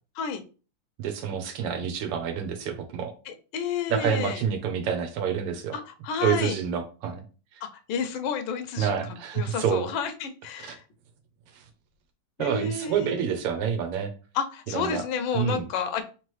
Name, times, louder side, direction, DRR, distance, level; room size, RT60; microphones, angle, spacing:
voice 1, 1.0-3.1 3.9-5.8 6.2-7.2 7.5-7.6 8.8-9.9 10.6-10.8 11.5-11.6 12.4-14.1 14.7-15.0 15.3-15.7, right 7 dB, 90° right, 7 dB, 1.7 m, -28 dB
voice 2, 3.3-4.4 5.7-6.6 7.6-8.9 9.3-10.8 12.4-13.2 14.3-16.0, left 6 dB, 75° left, 7 dB, 1.3 m, -31 dB
3.8 x 3.3 x 3.1 m, 0.35 s
omnidirectional pair, 2.4 m